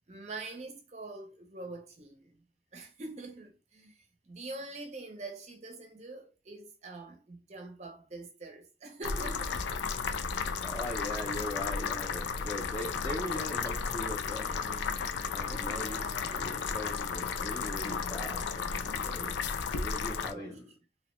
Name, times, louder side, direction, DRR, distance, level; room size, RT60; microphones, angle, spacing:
voice 1, 0.1-2.4 2.7-9.8 10.8-11.0 15.4-16.6 19.4-20.0 20.3-20.6, right 2 dB, 40° right, 0.5 m, -45 dB
sound 1, 9.0-20.3, left 5 dB, 80° left, 0.3 m, -34 dB
voice 2, 10.6-14.8 15.3-19.4 19.8-20.6, left 1 dB, 25° left, 0.5 m, -40 dB
2.8 x 2.0 x 3.0 m
head